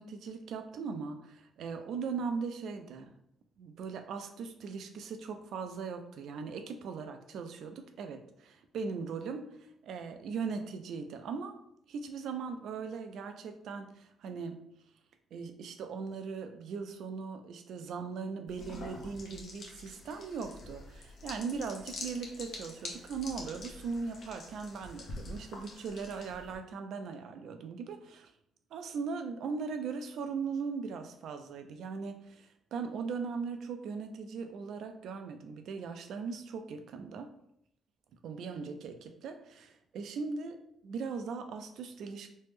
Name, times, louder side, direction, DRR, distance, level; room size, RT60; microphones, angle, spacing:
voice 1, 0.0-3.1 3.6-9.5 9.8-11.6 11.9-14.6 15.3-28.3 28.7-37.3 38.2-40.6 40.8-42.3, right 5 dB, 75° right, 7 dB, 0.3 m, -39 dB
sound 1, 18.5-26.6, left 2 dB, 60° left, 0.7 m, -46 dB
3.2 x 2.0 x 3.2 m, 0.75 s
cardioid pair, 90°, 0 cm